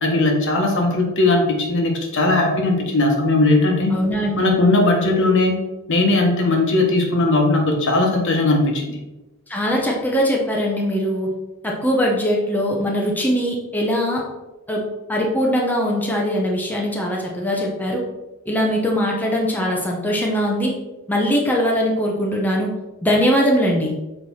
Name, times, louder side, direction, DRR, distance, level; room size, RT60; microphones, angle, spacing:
voice 1, 0.0-3.9 4.4-5.5 5.9-9.0, left 2 dB, 60° left, 1 dB, 1.3 m, -18 dB
voice 2, 3.9-4.5 9.5-11.3 11.6-14.2 14.7-14.8 15.1-18.0 18.5-20.7 21.1-22.7 23.0-23.9, equal, 10° left, -2 dB, 0.9 m, -21 dB
6.7 x 4.6 x 4.2 m, 1.1 s
head